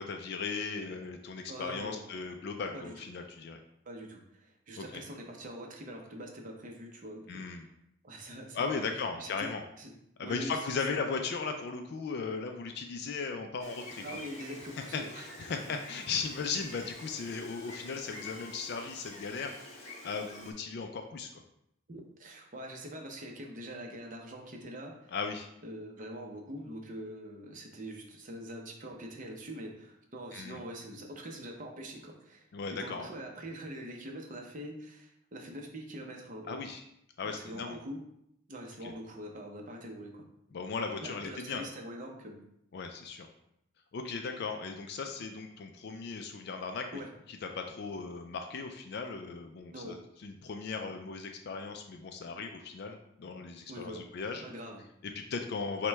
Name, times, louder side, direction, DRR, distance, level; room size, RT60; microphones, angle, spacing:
voice 1, 0.0-3.6 4.8-5.0 7.3-7.6 8.5-9.6 10.2-14.0 14.9-21.4 25.1-25.5 30.3-30.6 32.5-33.1 36.5-36.8 37.2-37.8 38.8-38.9 40.5-41.6 42.7-43.3 43.9-46.9 47.3-54.4 55.0-55.9, left 5 dB, 50° left, 5 dB, 0.3 m, -37 dB
voice 2, 1.5-2.0 2.7-3.1 3.9-7.7 8.0-8.8 9.2-9.5 9.8-9.9 10.2-10.6 14.0-15.2 15.7-15.8 21.9-25.1 25.6-36.6 37.2-38.0 38.5-40.3 41.0-42.4 46.9-47.1 49.7-50.0 53.7-54.0 54.4-54.8, equal, 35° right, 1 dB, 0.6 m, -44 dB
Gull seagull, 13.6-20.5, left 2 dB, 30° left, 0.8 m, -48 dB
5.9 x 2.2 x 3.3 m, 0.77 s
head